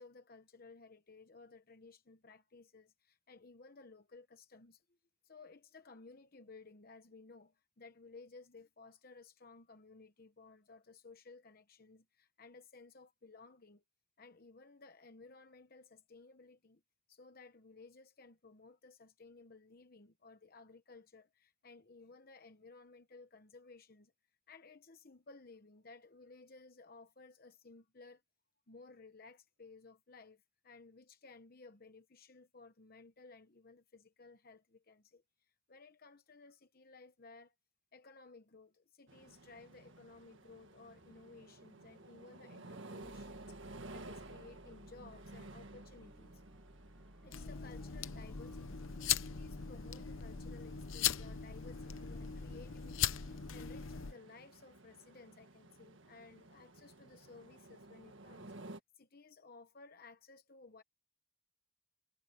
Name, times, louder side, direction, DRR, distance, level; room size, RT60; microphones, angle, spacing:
voice 1, 0.0-4.8 5.2-13.8 14.2-16.8 17.1-24.1 24.5-28.2 28.7-37.5 37.9-43.6 43.9-46.4 47.2-48.8 49.2-58.5 59.0-60.8, left 3 dB, 50° left, 1.0 m, -57 dB
sound 1, 39.1-58.8, right 2 dB, 75° right, 1.6 m, -55 dB
sound 2, 43.0-50.0, equal, 5° left, 3.7 m, -60 dB
sound 3, 47.3-54.1, left 9 dB, 85° left, 0.9 m, -39 dB
head